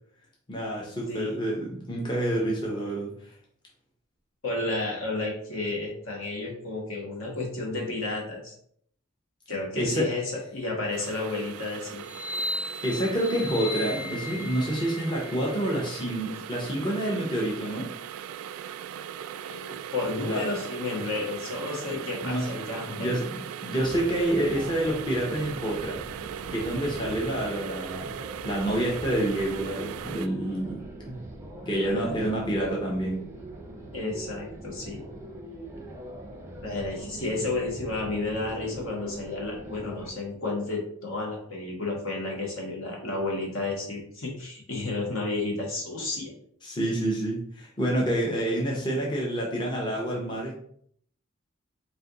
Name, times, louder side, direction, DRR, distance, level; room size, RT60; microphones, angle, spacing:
voice 1, 0.5-3.3 9.8-10.0 12.8-17.9 20.3-20.4 21.9-26.0 26.5-28.2 28.4-30.8 31.1-31.2 31.7-33.2 46.6-50.5, right 1 dB, 20° left, -3 dB, 0.7 m, -28 dB
voice 2, 1.1-1.4 4.4-8.5 9.5-12.0 19.4-23.2 31.7-32.3 33.9-35.0 36.6-46.3 48.7-48.8, left 2 dB, 65° left, -1 dB, 1.3 m, -32 dB
sound 1, 10.9-30.3, right 9 dB, 85° right, 0.3 m, -39 dB
sound 2, 12.0-16.1, left 1 dB, 85° left, 0.7 m, -36 dB
sound 3, 23.8-40.1, right 1 dB, 10° right, 0.6 m, -42 dB
4.2 x 2.5 x 3.8 m, 0.64 s
head